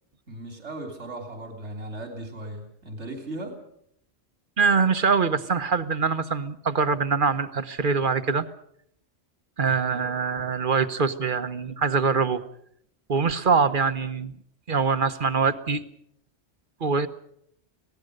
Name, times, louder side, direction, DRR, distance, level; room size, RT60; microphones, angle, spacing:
voice 1, 0.3-3.6 9.7-10.1, right 1 dB, 85° right, 4 dB, 3.5 m, -37 dB
voice 2, 4.6-8.4 9.6-12.4 13.1-14.3 14.7-15.8 16.8-17.1, right 5 dB, 50° right, 11 dB, 1.3 m, -23 dB
25.5 x 18.0 x 6.6 m, 0.70 s
omnidirectional pair, 1.1 m